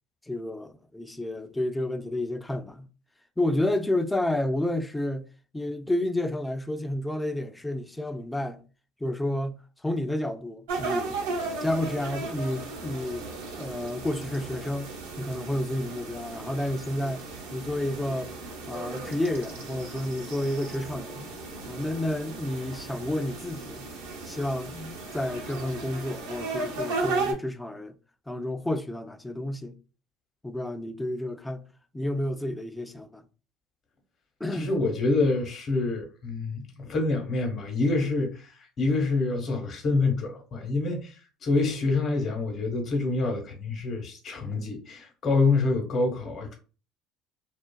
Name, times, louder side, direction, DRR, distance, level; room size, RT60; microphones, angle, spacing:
voice 1, 0.3-2.9 3.4-5.3 5.5-8.6 9.0-11.2 11.6-13.3 13.6-14.9 15.2-18.3 18.7-21.3 21.7-23.9 24.2-27.9 28.3-29.7 30.4-31.7 31.9-33.2 34.4-34.7, left 1 dB, 10° left, 0.3 m, -30 dB
sound 1, 10.7-27.3, right 3 dB, 85° right, 0.6 m, -36 dB
voice 2, 34.5-46.5, left 3 dB, 50° left, 0.9 m, -27 dB
2.5 x 2.3 x 2.2 m
hypercardioid pair, 70°, 0 cm